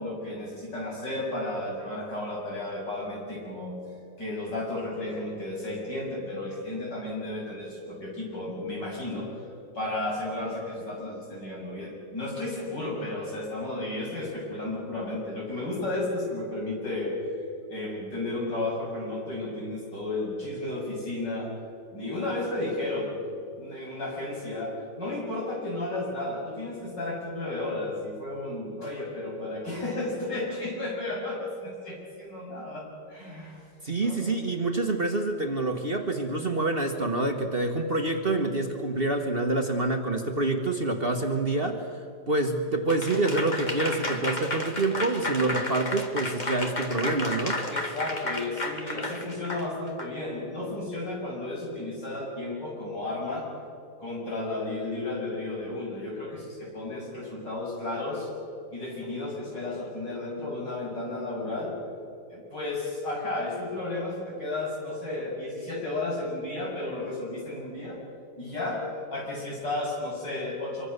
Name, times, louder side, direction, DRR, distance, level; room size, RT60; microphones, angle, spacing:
voice 1, 0.0-3.7 4.2-9.5 9.7-17.2 17.7-21.5 21.9-23.1 23.6-33.7 34.0-34.3 47.7-53.5 54.0-58.3 58.7-61.8 62.3-68.0 68.4-70.9, left 2 dB, 70° left, -3 dB, 7.8 m, -33 dB
voice 2, 33.8-47.7, right 2 dB, 35° right, 4 dB, 1.5 m, -27 dB
Applause / Crowd, 42.9-50.1, left 2 dB, 25° left, 1.9 m, -33 dB
25.5 x 24.0 x 6.7 m, 2.4 s
omnidirectional pair, 2.0 m